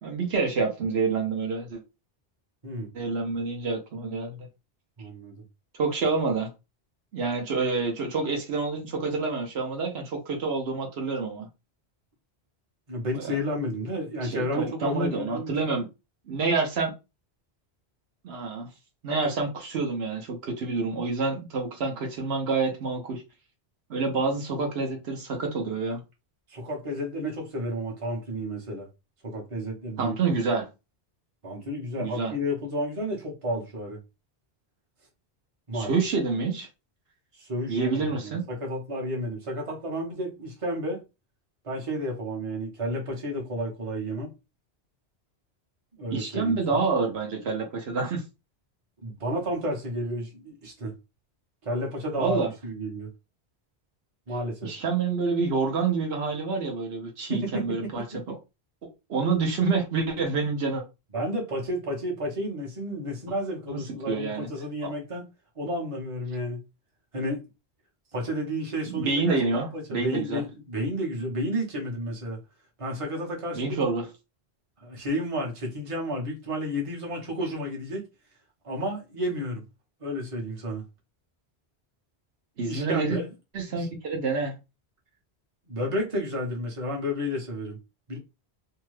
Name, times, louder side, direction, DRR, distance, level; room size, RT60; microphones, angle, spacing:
voice 1, 0.0-1.8 2.9-4.5 5.8-6.5 7.1-11.5 13.1-13.4 14.2-15.9 16.3-16.9 18.2-18.7 19.0-23.2 23.9-26.0 30.0-30.7 32.0-32.3 35.7-36.7 37.7-38.4 46.1-48.2 52.2-52.5 54.6-58.0 59.1-60.8 63.7-64.5 64.8-64.9 68.9-70.4 73.5-74.1 82.6-83.2 83.5-84.6, right 4 dB, 75° right, 1.0 m, -27 dB
voice 2, 5.0-5.4 12.9-15.5 26.5-28.9 29.2-30.2 31.4-34.0 35.7-35.9 37.4-41.0 41.6-44.3 45.9-46.9 49.0-51.0 51.6-53.1 54.3-54.7 57.3-58.2 61.1-65.2 65.6-66.6 67.1-67.4 68.1-72.4 72.8-73.8 74.8-78.0 78.6-79.6 80.0-80.8 82.6-83.3 83.7-83.9 85.7-87.8 88.1-88.2, equal, 30° right, 0.9 m, -31 dB
2.7 x 2.2 x 3.1 m
omnidirectional pair, 1.1 m